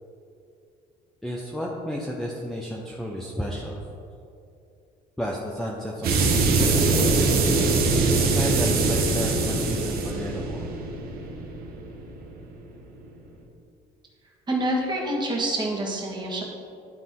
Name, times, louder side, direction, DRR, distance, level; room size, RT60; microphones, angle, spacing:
voice 1, 1.2-3.8 5.2-7.3 7.6-7.8 8.3-10.7, equal, ahead, -2 dB, 0.7 m, -32 dB
sound 1, 6.0-12.5, right 3 dB, 65° right, 1.1 m, -23 dB
voice 2, 14.5-16.4, right 1 dB, 25° right, -2 dB, 1.6 m, -27 dB
11.5 x 3.9 x 3.7 m, 2.6 s
cardioid pair, 110°, 17 cm